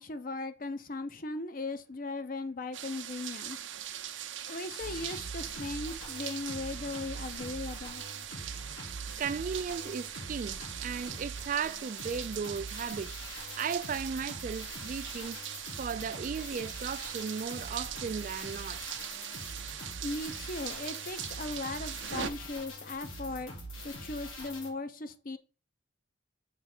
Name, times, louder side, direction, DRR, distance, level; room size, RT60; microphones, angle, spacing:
voice 1, 0.0-3.7 4.5-8.0 20.0-23.6 23.8-25.4, left 2 dB, 45° left, 0.6 m, -38 dB
sound 1, 2.7-22.3, right 10 dB, 70° right, 0.7 m, -41 dB
sound 2, 4.8-24.7, equal, 85° left, 2.2 m, -44 dB
voice 2, 9.2-15.4 15.8-18.8, right 6 dB, 40° right, 0.3 m, -36 dB
6.7 x 3.2 x 5.9 m
head